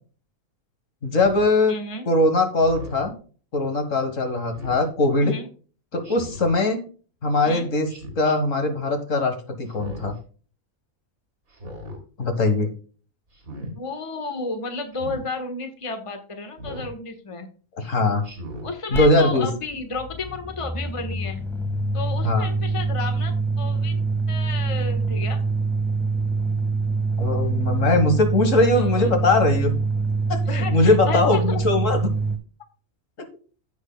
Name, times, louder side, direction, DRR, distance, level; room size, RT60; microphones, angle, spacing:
voice 1, 1.0-1.8 2.1-3.1 3.5-5.4 5.9-6.8 7.2-7.9 8.2-10.1 12.2-12.7 17.8-18.2 18.9-19.5 22.2-22.5 27.2-29.7 30.3-32.1, left 2 dB, 65° left, 6 dB, 1.9 m, -21 dB
Speech synthesizer, 1.1-1.5 2.6-3.1 4.5-4.8 6.0-6.5 7.9-8.3 9.6-10.2 11.5-12.0 13.3-13.7 14.9-15.2 16.6-16.9 18.2-18.7, equal, 85° right, 3.4 m, -38 dB
voice 2, 1.7-2.1 5.2-5.5 7.4-7.7 13.7-17.5 18.6-21.4 21.9-24.0 24.3-25.4 28.7-29.2 30.5-31.6, left 3 dB, 25° left, 6 dB, 1.3 m, -32 dB
sound 1, 18.9-19.1 19.3-32.4, right 3 dB, ahead, 1.4 m, -25 dB
15.0 x 6.3 x 2.2 m, 0.39 s
omnidirectional pair, 1.4 m